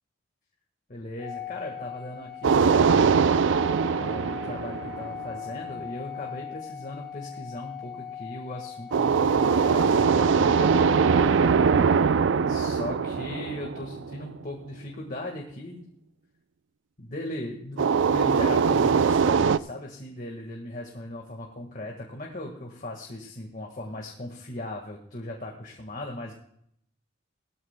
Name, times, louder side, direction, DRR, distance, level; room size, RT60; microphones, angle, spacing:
voice 1, 0.9-3.3 4.0-12.0 12.5-15.9 17.0-26.3, left 1 dB, 40° left, 0 dB, 1.6 m, -38 dB
Organ, 1.2-12.0, left 9 dB, 15° left, 5.0 m, -39 dB
sound 1, 2.4-5.5 8.9-14.3 17.8-19.6, right 6 dB, 65° right, 0.4 m, -22 dB
18.5 x 13.5 x 2.2 m, 0.71 s
head